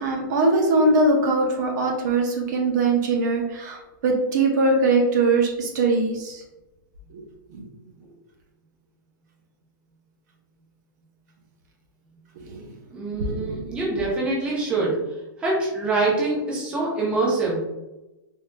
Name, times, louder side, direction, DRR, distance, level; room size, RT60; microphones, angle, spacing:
voice 1, 0.0-6.4 7.5-7.6 12.5-12.6, right 2 dB, 55° right, 1 dB, 0.7 m, -21 dB
voice 2, 12.9-14.9 15.4-17.6, right 3 dB, 10° right, -4 dB, 0.6 m, -24 dB
3.7 x 2.7 x 2.2 m, 1.0 s
supercardioid pair, 165°, 11 cm